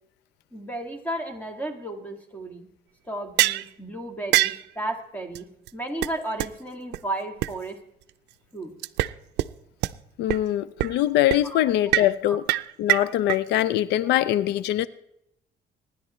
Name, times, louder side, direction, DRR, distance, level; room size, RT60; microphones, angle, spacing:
voice 1, 0.5-2.7 3.1-5.5 5.7-7.8 8.5-8.7 11.4-11.6 12.3-12.4, right 1 dB, 10° left, 2.0 m, -33 dB
sound 1, 3.4-3.7 4.3-4.6 5.4-5.5 5.7-5.8 6.0-6.1 6.4-6.5 6.9-7.0 7.4-7.5 8.8-9.1 9.4-9.5 9.8-9.9 10.3-10.4 10.8-11.0 11.3-11.4 11.9-12.1 12.5-13.4, right 17 dB, 90° right, 0.4 m, -23 dB
voice 2, 10.2-12.4 12.8-14.9, left 13 dB, 90° left, 0.5 m, -23 dB
24.5 x 10.5 x 3.1 m
cardioid pair, 115°, 17 cm